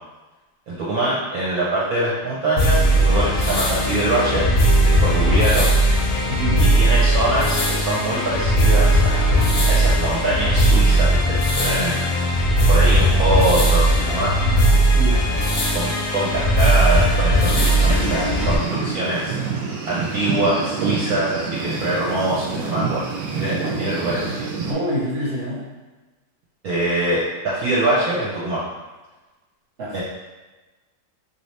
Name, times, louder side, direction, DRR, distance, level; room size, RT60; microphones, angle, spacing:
voice 1, 0.7-4.4 4.8-5.6 6.6-9.4 9.7-12.0 12.7-14.3 15.7-19.3 19.9-24.3 26.6-28.6 29.9-30.0, right 1 dB, 65° right, -7 dB, 1.1 m, -23 dB
sound 1, 2.6-18.6, right 1 dB, 60° left, 0.7 m, -18 dB
voice 2, 6.3-6.7 14.9-15.2 23.6-23.8 24.7-25.7 29.8-30.0, equal, 45° right, -6 dB, 1.1 m, -26 dB
sound 2, 17.4-24.7, right 4 dB, 90° right, 1.2 m, -27 dB
3.2 x 2.6 x 3.2 m, 1.2 s
omnidirectional pair, 1.8 m